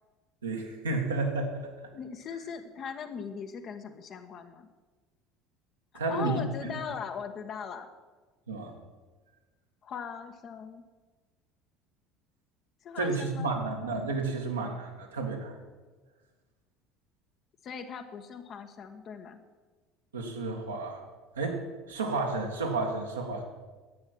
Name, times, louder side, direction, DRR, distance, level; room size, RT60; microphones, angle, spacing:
voice 1, 0.4-1.7 5.9-6.7 8.5-8.7 13.0-15.5 20.1-21.0 21.4-21.6 21.9-23.4, right 3 dB, 80° right, 0 dB, 2.1 m, -31 dB
voice 2, 1.9-4.7 6.1-7.9 9.8-10.8 12.8-13.5 17.6-19.4, left 6 dB, 40° left, 6 dB, 1.3 m, -39 dB
12.0 x 8.8 x 7.7 m, 1.3 s
figure-of-eight pair, 65°, 0 cm